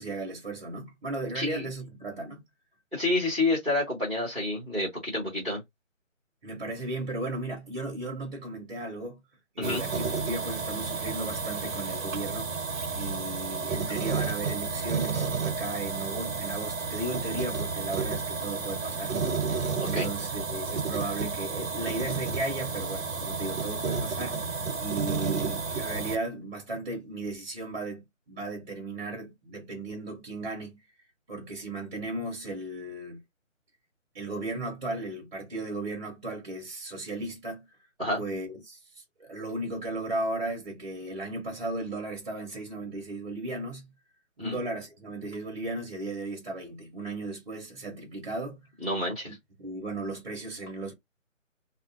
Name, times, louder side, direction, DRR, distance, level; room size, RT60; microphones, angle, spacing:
voice 1, 0.0-2.4 6.4-9.2 9.5-12.6 12.9-19.1 19.5-19.6 19.8-24.5 24.8-30.8 31.3-33.2 34.1-37.7 38.2-43.9 44.4-48.6 49.2-50.9, right 2 dB, 35° right, 0.8 m, -35 dB
voice 2, 1.3-1.6 2.9-5.6 9.6-9.8 19.9-20.1 38.0-38.2 44.4-44.6 48.8-49.4, left 2 dB, ahead, 0.5 m, -29 dB
sound 1, 9.6-26.2, right 4 dB, 80° right, 0.8 m, -31 dB
2.4 x 2.3 x 2.4 m
figure-of-eight pair, 155°, 40 cm